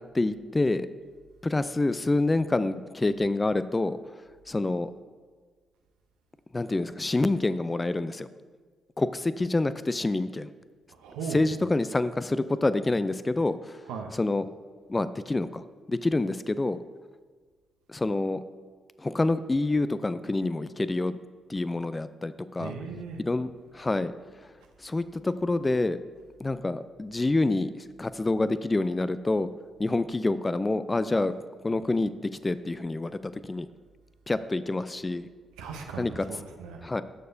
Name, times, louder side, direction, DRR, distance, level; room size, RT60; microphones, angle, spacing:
voice 1, 0.1-0.9 1.4-4.0 4.5-4.9 6.5-8.3 9.0-10.5 11.3-13.8 14.1-14.4 14.9-16.8 17.9-18.4 19.0-21.2 21.5-22.7 23.3-24.1 24.8-26.0 26.4-27.7 28.0-29.5 29.8-31.3 31.6-32.1 32.4-33.7 34.3-35.3 36.0-36.3 36.8-37.0, left 2 dB, 25° left, 14 dB, 0.3 m, -27 dB
voice 2, 10.9-11.4 13.8-14.1 22.6-23.2 35.6-36.8, right 5 dB, 85° right, 2 dB, 0.7 m, -37 dB
11.0 x 6.6 x 2.6 m, 1.5 s
hypercardioid pair, 45°, 0 cm